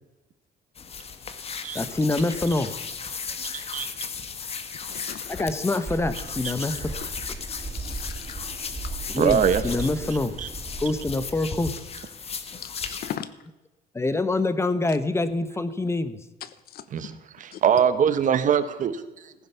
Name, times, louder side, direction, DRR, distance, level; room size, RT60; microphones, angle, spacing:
sound 1, 0.7-13.2, left 6 dB, 35° left, 1.5 m, -36 dB
voice 1, 1.7-2.8 5.3-7.0 9.1-10.4 10.8-11.8 12.9-13.0 13.9-16.2, left 2 dB, 15° left, 13 dB, 1.2 m, -26 dB
voice 2, 3.5-3.9 9.2-10.1 10.4-10.5 16.9-19.3, right 8 dB, 50° right, 12 dB, 1.2 m, -23 dB
voice 3, 4.7-5.5 7.7-8.4 8.8-8.9 12.6-13.3 16.4-16.8 17.5-17.6, left 10 dB, 65° left, 15 dB, 1.0 m, -38 dB
sound 2, 5.9-11.3, right 2 dB, 15° right, 2.5 m, -36 dB
15.5 x 10.5 x 7.0 m, 1.0 s
cardioid pair, 110°, 17 cm